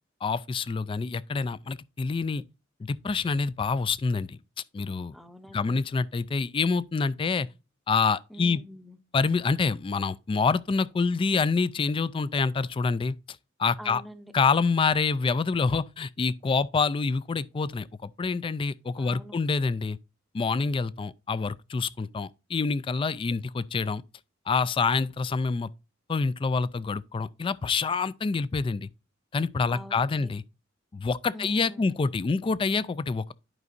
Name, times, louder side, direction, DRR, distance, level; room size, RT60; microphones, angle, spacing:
voice 1, 0.2-2.4 2.8-4.4 4.7-5.1 5.5-7.5 7.9-8.6 9.1-13.2 13.6-14.0 14.3-20.0 20.3-24.0 24.5-25.7 26.1-28.9 29.3-30.4 30.9-33.3, left 4 dB, 25° left, 0.3 m, -27 dB
voice 2, 5.1-5.8 8.3-9.0 13.8-14.3 19.0-19.4 29.7-30.3 31.3-32.0, equal, ahead, 0.7 m, -44 dB
11.0 x 5.3 x 2.5 m
head